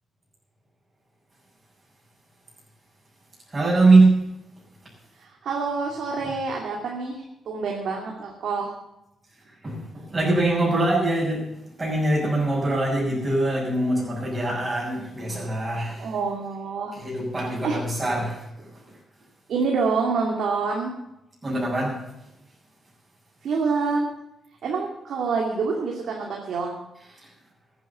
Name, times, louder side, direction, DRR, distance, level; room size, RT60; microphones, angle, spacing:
voice 1, 3.5-4.3 9.6-11.5 11.8-16.1 17.0-18.4 21.4-22.0, right 2 dB, 25° right, -7 dB, 6.2 m, -22 dB
voice 2, 5.2-7.2 7.5-8.7 16.0-16.9 17.5-17.8 19.5-20.9 23.4-24.1 24.6-26.7, right 4 dB, 75° right, -1 dB, 2.5 m, -27 dB
14.0 x 9.7 x 7.0 m, 0.86 s
cardioid pair, 95°, 0 cm